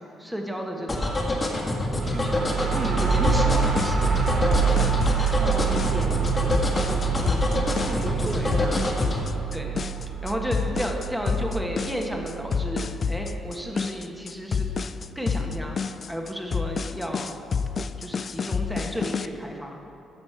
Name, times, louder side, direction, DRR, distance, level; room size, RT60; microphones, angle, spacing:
voice 1, 0.2-1.3 2.0-4.1 4.7-5.8 7.1-7.7 8.2-8.6 9.5-9.9 10.2-14.7 15.1-15.8 16.1-17.3 18.0-19.8, equal, ahead, 1 dB, 1.3 m, -33 dB
sound 1, 0.9-9.2, left 2 dB, 25° left, 1.6 m, -26 dB
sound 2, 1.8-13.5, right 7 dB, 65° right, 1.7 m, -27 dB
sound 3, 3.3-19.3, left 5 dB, 45° left, 0.3 m, -29 dB
voice 2, 4.3-4.8 5.4-7.2 7.8-9.3, right 2 dB, 35° right, 1 dB, 0.9 m, -36 dB
15.5 x 5.2 x 4.6 m, 2.9 s
cardioid pair, 90°, 0 cm